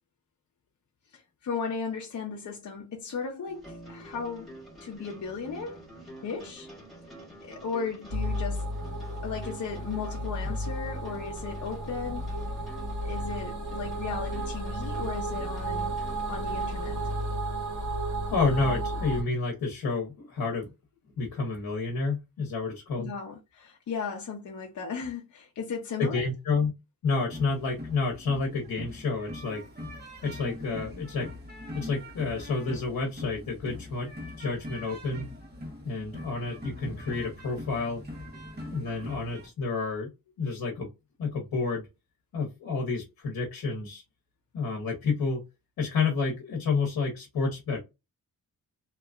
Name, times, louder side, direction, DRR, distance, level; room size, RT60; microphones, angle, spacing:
voice 1, 1.1-4.5 4.8-5.8 6.2-6.7 7.4-9.0 9.2-12.3 13.0-16.0 16.3-17.0 23.0-26.2, left 5 dB, 55° left, 0.7 m, -36 dB
sound 1, 3.5-17.3, right 1 dB, ahead, 1.5 m, -48 dB
sound 2, 8.1-19.2, right 1 dB, 55° right, 1.5 m, -33 dB
voice 2, 18.3-20.7 21.2-23.1 26.0-26.7 27.0-29.6 30.2-31.3 31.7-34.1 34.4-35.3 35.8-38.0 38.6-40.1 40.4-40.9 41.2-41.9 42.3-44.0 44.5-45.4 45.8-47.8, left 4 dB, 85° left, 0.9 m, -29 dB
sound 3, 27.3-39.5, left 1 dB, 30° right, 1.2 m, -42 dB
2.9 x 2.3 x 2.3 m
cardioid pair, 65°, 35 cm